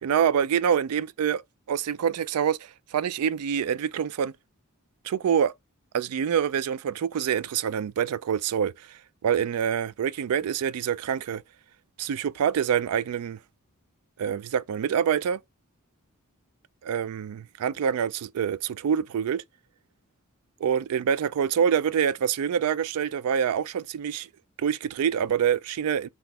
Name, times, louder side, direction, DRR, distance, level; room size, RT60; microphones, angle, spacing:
voice 1, 0.0-1.4 1.7-4.3 5.0-5.5 5.9-11.4 12.0-13.4 14.2-15.4 16.8-19.4 20.6-24.3 24.6-26.1, right 8 dB, 85° right, 0.3 m, -26 dB
5.9 x 2.4 x 3.4 m
head